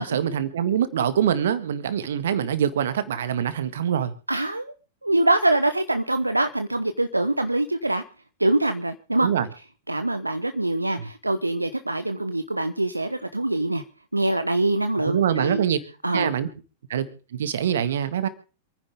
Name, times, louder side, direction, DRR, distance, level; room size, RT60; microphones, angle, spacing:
voice 1, 0.0-4.1 9.2-9.5 11.0-11.1 15.1-15.8 16.1-16.5 16.9-18.3, right 9 dB, 60° right, 13 dB, 1.7 m, -24 dB
voice 2, 4.3-4.7 5.0-8.0 8.4-9.3 9.9-13.8 14.1-15.6 16.0-16.3, right 2 dB, 85° right, 10 dB, 0.9 m, -24 dB
27.5 x 10.0 x 3.6 m, 0.35 s
figure-of-eight pair, 95°, 0 cm